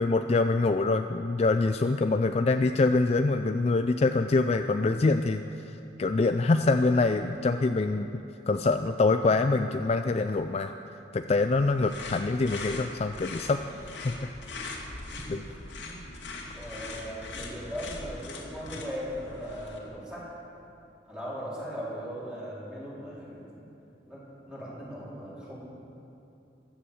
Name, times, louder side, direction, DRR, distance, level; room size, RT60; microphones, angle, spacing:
voice 1, 0.0-5.4 6.0-10.7 11.1-13.6 14.0-14.1 15.3-15.4, left 3 dB, 35° left, 8 dB, 0.4 m, -25 dB
sound 1, 11.5-19.8, left 3 dB, 80° left, 2.3 m, -41 dB
voice 2, 12.0-12.3 15.1-15.4 15.8-16.1 16.5-20.3 21.1-23.7 24.1-25.6, equal, 5° right, -8 dB, 4.2 m, -39 dB
15.5 x 11.5 x 7.1 m, 2.9 s
head